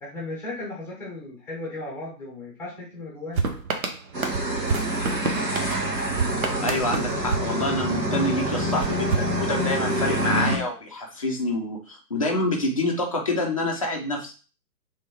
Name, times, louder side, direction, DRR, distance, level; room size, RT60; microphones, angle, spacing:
voice 1, 0.0-3.5, left 2 dB, 5° left, -3 dB, 0.9 m, -36 dB
sound 1, 3.3-8.2 8.8-10.0, right 4 dB, 55° right, 0.9 m, -30 dB
sound 2, 4.1-10.6, right 1 dB, 80° right, 1.8 m, -26 dB
voice 2, 6.6-14.3, left 1 dB, 25° left, 0 dB, 0.5 m, -27 dB
3.5 x 3.3 x 4.4 m, 0.37 s
figure-of-eight pair, 135°, 49 cm